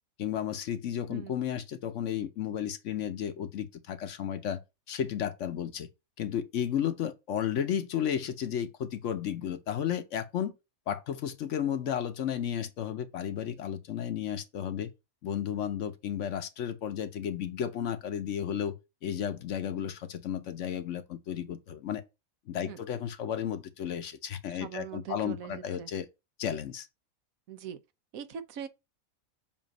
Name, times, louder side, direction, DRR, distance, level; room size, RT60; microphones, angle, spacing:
voice 1, 0.2-4.6 4.9-5.9 6.2-10.5 10.9-14.9 15.2-18.8 19.0-22.0 22.5-26.1 26.4-26.9, left 9 dB, 65° left, 1.0 m, -33 dB
voice 2, 24.5-25.9 27.5-27.8 28.1-28.7, right 8 dB, 80° right, 1.2 m, -41 dB
7.4 x 2.6 x 5.1 m
omnidirectional pair, 1.5 m